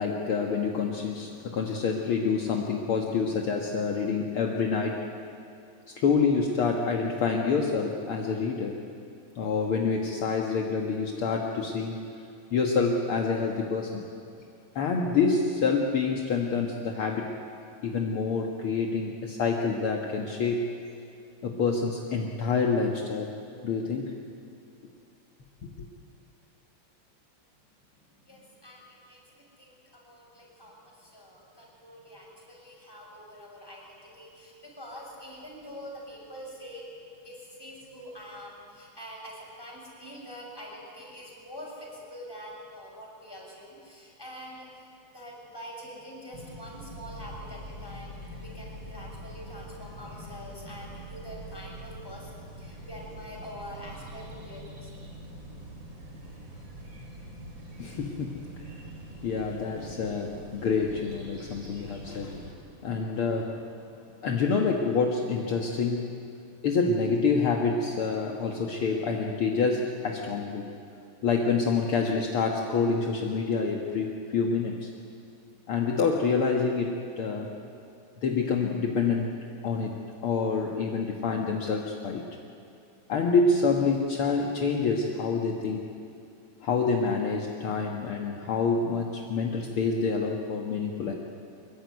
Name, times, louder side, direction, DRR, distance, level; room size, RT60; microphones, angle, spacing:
voice 1, 0.0-5.1 5.9-8.8 9.3-12.0 12.5-14.0 14.7-17.3 17.8-20.6 21.4-23.4 23.6-24.1 25.6-25.7 57.8-58.7 59.2-62.4 62.8-63.6 64.2-66.1 66.6-70.7 71.2-74.9 75.7-77.5 78.2-79.3 79.6-79.9 80.2-82.2 83.1-85.8 86.6-91.1, left 4 dB, 55° left, 1 dB, 1.6 m, -27 dB
voice 2, 28.3-36.9 37.2-44.9 45.1-55.0, equal, 5° left, -3 dB, 7.0 m, -45 dB
sound 1, 46.3-62.5, right 1 dB, 30° right, 4.3 m, -44 dB
24.5 x 22.5 x 9.6 m, 2.6 s
omnidirectional pair, 4.3 m